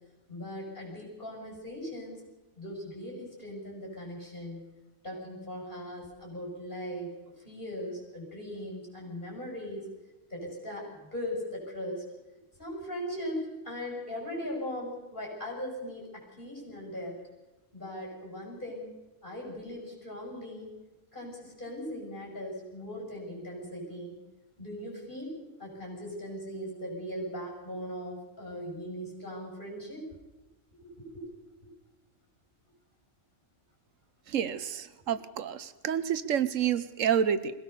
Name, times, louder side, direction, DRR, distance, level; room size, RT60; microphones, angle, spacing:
voice 1, 0.3-2.2 2.6-4.6 5.0-9.8 10.3-12.1 12.6-17.2 17.7-18.9 19.2-20.7 21.1-24.2 24.6-30.0 30.8-31.3 31.6-31.7, equal, 40° left, -1 dB, 7.2 m, -39 dB
voice 2, 34.3-37.5, right 8 dB, 85° right, 14 dB, 1.3 m, -29 dB
22.0 x 17.0 x 6.8 m, 1.1 s
omnidirectional pair, 1.3 m